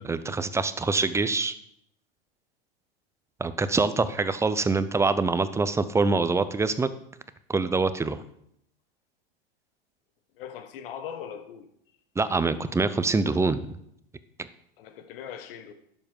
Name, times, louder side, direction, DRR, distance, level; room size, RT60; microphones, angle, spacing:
voice 1, 0.0-1.5 3.4-6.9 7.5-8.2 12.2-13.6 14.4-14.5, right 3 dB, 10° right, 13 dB, 0.6 m, -25 dB
voice 2, 10.4-11.7 14.8-15.7, left 8 dB, 65° left, 9 dB, 1.4 m, -40 dB
10.5 x 7.5 x 5.3 m, 0.74 s
hypercardioid pair, 115°, 31 cm